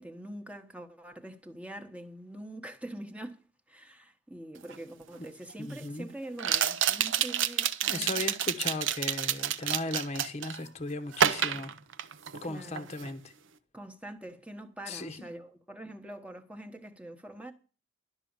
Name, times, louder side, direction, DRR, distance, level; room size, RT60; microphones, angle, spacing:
voice 1, 0.0-3.4 3.7-8.2 12.5-12.9 13.7-17.5, right 1 dB, 5° right, 1.1 m, -44 dB
sound 1, 4.7-4.8 6.4-10.6 11.1-12.5 12.8-13.1, right 9 dB, 60° right, 0.7 m, -29 dB
voice 2, 5.6-6.1 7.9-11.7 12.4-13.3 14.9-15.3, left 2 dB, 30° left, 1.0 m, -36 dB
12.0 x 6.2 x 8.7 m
head